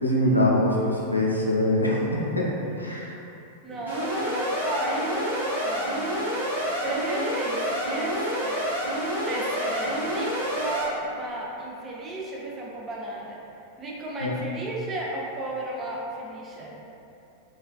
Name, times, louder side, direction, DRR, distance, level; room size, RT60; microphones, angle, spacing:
voice 1, 0.0-2.1 2.4-2.5 2.8-3.1 14.2-14.3, left 1 dB, 85° left, -4 dB, 0.4 m, -23 dB
voice 2, 3.6-6.3 6.8-8.7 9.3-13.4 13.8-16.8, right 1 dB, 25° right, -4 dB, 0.5 m, -34 dB
Alarm, 3.9-10.8, equal, 75° right, 0.7 m, -28 dB
3.1 x 2.3 x 2.3 m, 2.8 s
figure-of-eight pair, 90°, 0 cm